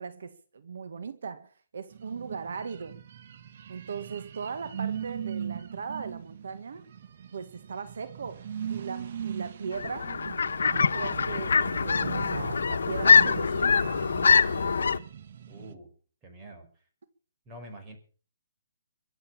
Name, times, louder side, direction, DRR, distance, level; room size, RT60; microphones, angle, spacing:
voice 1, 0.0-3.0 3.7-6.8 7.3-10.1 10.7-14.1, right 5 dB, 70° right, 1.7 m, -38 dB
sound 1, 1.9-15.7, right 9 dB, 50° right, 1.3 m, -39 dB
sound 2, 9.7-15.0, left 5 dB, 85° left, 1.2 m, -23 dB
voice 2, 15.5-15.9 16.2-16.7 17.5-18.0, right 1 dB, 15° right, 4.7 m, -45 dB
23.0 x 8.1 x 7.3 m
hypercardioid pair, 165°, 0 cm